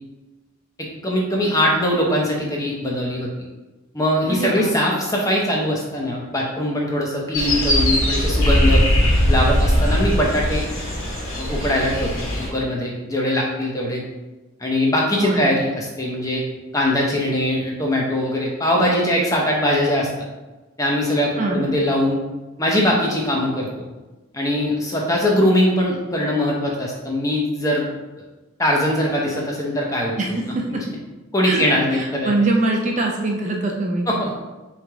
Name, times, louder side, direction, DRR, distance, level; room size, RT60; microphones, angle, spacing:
voice 1, 1.0-3.3 3.9-8.8 9.3-10.6 11.4-14.0 14.6-16.4 16.7-20.1 20.8-22.2 22.6-23.9 24.3-27.9 28.6-30.4 30.7-30.8 31.3-32.3 34.1-34.3, left 1 dB, 15° left, -2 dB, 0.7 m, -21 dB
voice 2, 4.3-4.7 15.2-15.5 21.4-21.7 30.2-30.3 30.5-30.8 31.4-31.6 32.0-34.1, right 2 dB, 35° right, 0 dB, 0.4 m, -22 dB
sound 1, 7.3-12.5, equal, 75° left, 1.5 m, -19 dB
3.8 x 3.2 x 3.5 m, 1.1 s
head